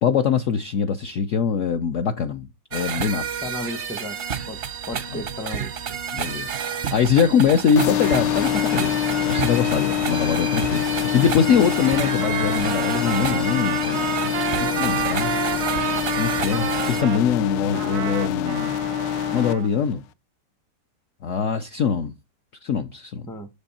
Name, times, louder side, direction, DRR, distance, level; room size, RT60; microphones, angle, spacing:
voice 1, 0.0-2.5 2.7-3.3 5.1-5.2 6.1-14.2 14.6-15.3 16.2-18.8 19.3-20.0 21.2-22.1 22.6-23.2, left 7 dB, 65° left, 0.7 m, -23 dB
sound 1, 2.7-17.0, right 7 dB, 60° right, 0.6 m, -30 dB
voice 2, 3.4-4.2 4.5-4.6 4.9-5.8 23.3-23.5, left 1 dB, 5° left, 0.5 m, -34 dB
sound 2, 7.8-19.5, left 11 dB, 85° left, 1.3 m, -25 dB
Trumpet, 11.7-17.2 17.7-19.7, right 12 dB, 85° right, 1.3 m, -30 dB
7.1 x 5.2 x 4.2 m
omnidirectional pair, 1.9 m